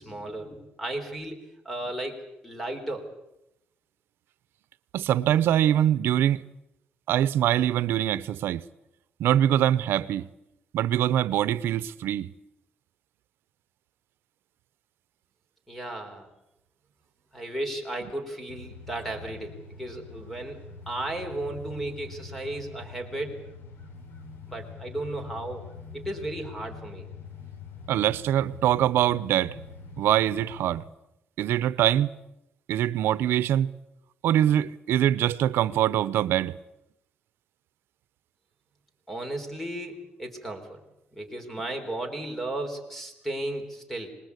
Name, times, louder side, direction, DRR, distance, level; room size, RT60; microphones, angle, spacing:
voice 1, 0.0-1.4 1.6-3.1 15.7-16.3 17.3-20.6 20.9-23.4 24.5-25.6 25.9-27.1 39.1-40.8 41.1-44.1, right 1 dB, 5° left, 3.9 m, -34 dB
voice 2, 4.9-6.4 7.1-8.6 9.2-10.3 10.7-12.3 27.9-29.6 30.0-30.8 31.4-32.1 32.7-33.7 34.2-36.6, right 11 dB, 85° right, 0.9 m, -23 dB
sound 1, 18.5-30.8, left 4 dB, 80° left, 3.3 m, -44 dB
26.0 x 20.5 x 8.4 m
cardioid pair, 160°, 4 cm